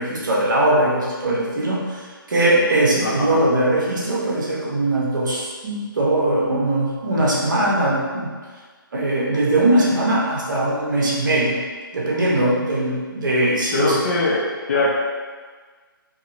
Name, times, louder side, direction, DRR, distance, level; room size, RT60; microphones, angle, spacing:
voice 1, 0.0-8.3 8.9-11.6 11.9-14.0, right 1 dB, 55° right, -4 dB, 0.9 m, -20 dB
voice 2, 3.0-3.4 13.7-15.0, left 2 dB, 40° left, -3 dB, 0.5 m, -21 dB
2.8 x 2.8 x 2.6 m, 1.5 s
figure-of-eight pair, 150°, 12 cm